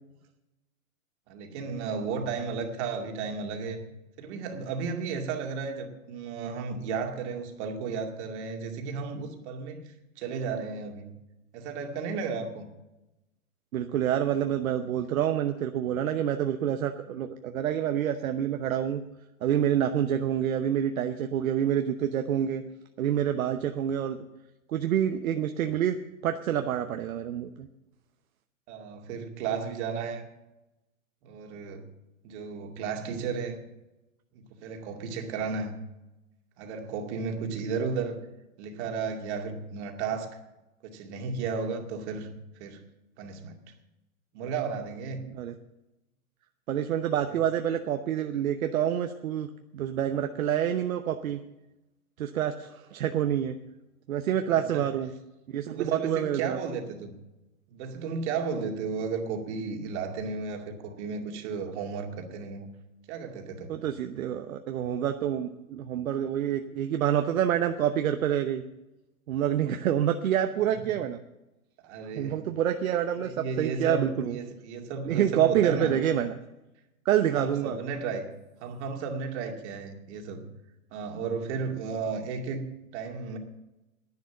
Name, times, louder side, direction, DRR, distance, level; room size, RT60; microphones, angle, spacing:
voice 1, 1.3-3.8 4.2-11.1 11.5-12.7 21.1-21.3 28.7-30.2 31.2-31.9 32.2-33.6 34.3-35.8 36.6-38.2 38.6-40.4 40.8-42.8 43.2-43.6 44.3-45.2 47.3-47.4 54.5-54.8 55.7-57.1 57.7-62.7 63.1-63.7 70.7-71.0 71.8-72.4 73.2-75.9 77.4-78.3 78.6-80.5 80.9-82.6 82.9-83.4, right 5 dB, 50° right, 4 dB, 2.4 m, -34 dB
voice 2, 13.7-19.0 19.4-22.6 23.0-24.2 24.7-26.0 26.2-27.7 45.3-45.5 46.7-49.5 49.7-51.4 52.2-53.6 54.1-55.1 55.5-56.6 63.7-68.6 69.3-71.2 72.2-74.4 75.0-76.3 77.0-77.8, right 10 dB, 70° right, 7 dB, 1.0 m, -27 dB
11.0 x 9.5 x 7.5 m, 0.99 s
hypercardioid pair, 120°, 43 cm